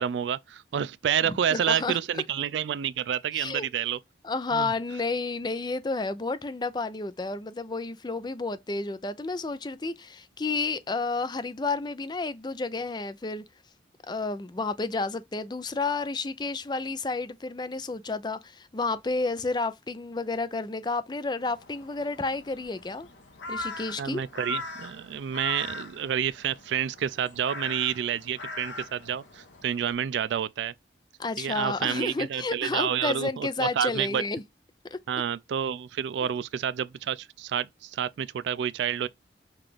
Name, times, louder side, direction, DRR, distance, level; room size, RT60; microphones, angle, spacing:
voice 1, 0.0-4.0 4.5-4.7 24.0-30.7 31.4-34.2 35.1-39.1, right 8 dB, 75° right, 0.3 m, -29 dB
voice 2, 1.3-2.2 3.3-3.7 4.2-13.4 14.1-23.1 23.5-24.2 31.2-34.4 34.9-35.0, left 3 dB, 25° left, 0.4 m, -31 dB
Crow, 21.5-29.9, left 2 dB, 85° left, 0.9 m, -40 dB
5.9 x 2.4 x 3.2 m
head